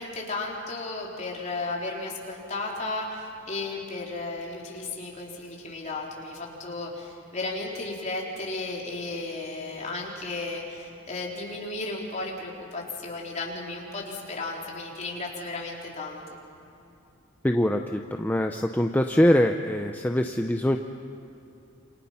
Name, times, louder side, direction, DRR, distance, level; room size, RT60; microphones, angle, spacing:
voice 1, 0.0-16.4, left 2 dB, 35° left, -2 dB, 4.0 m, -34 dB
voice 2, 17.4-20.8, left 1 dB, 10° left, 4 dB, 0.6 m, -23 dB
28.0 x 27.0 x 5.8 m, 2.8 s
head